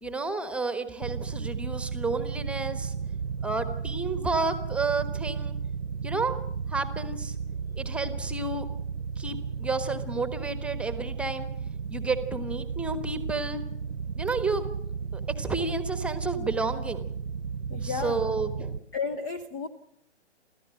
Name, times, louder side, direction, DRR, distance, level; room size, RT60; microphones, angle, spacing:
voice 1, 0.0-2.9 3.4-5.6 6.0-6.4 6.7-7.4 7.7-8.7 9.2-11.5 11.9-13.6 14.1-14.7 15.1-17.1 17.8-18.8, right 3 dB, 5° right, 10 dB, 1.2 m, -31 dB
sound 1, 1.0-18.8, right 6 dB, 75° right, 1.2 m, -34 dB
voice 2, 17.7-18.3 18.9-19.7, left 5 dB, 20° left, 14 dB, 0.7 m, -32 dB
28.5 x 14.5 x 7.7 m, 0.75 s
figure-of-eight pair, 135°, 34 cm